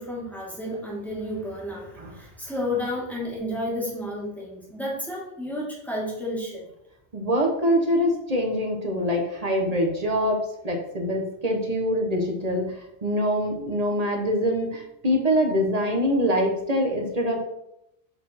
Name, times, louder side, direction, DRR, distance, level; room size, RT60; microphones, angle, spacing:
voice 1, 0.0-6.7, left 1 dB, ahead, -4 dB, 2.0 m, -31 dB
voice 2, 7.1-17.4, equal, 35° right, 1 dB, 1.1 m, -24 dB
6.8 x 4.2 x 4.2 m, 0.82 s
omnidirectional pair, 1.1 m